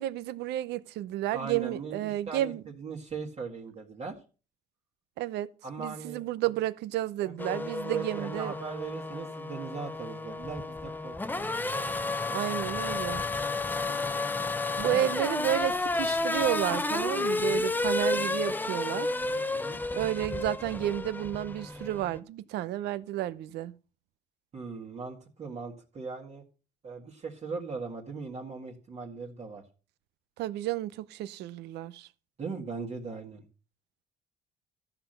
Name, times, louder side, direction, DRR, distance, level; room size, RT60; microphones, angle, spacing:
voice 1, 0.0-2.6 5.2-5.5 5.8-8.5 12.3-13.2 14.8-19.1 19.9-23.7 30.4-32.1, right 13 dB, 80° right, 0.7 m, -31 dB
voice 2, 1.3-4.2 5.6-6.3 7.2-11.5 13.7-14.1 14.7-15.1 17.3-17.6 19.6-19.8 24.5-26.4 26.8-29.6 32.4-33.4, right 4 dB, 40° right, 1.9 m, -39 dB
Race car auto racing / Accelerating revving vroom, 7.4-22.2, left 3 dB, 10° left, 0.6 m, -31 dB
14.0 x 6.0 x 6.7 m
cardioid pair, 110°, 17 cm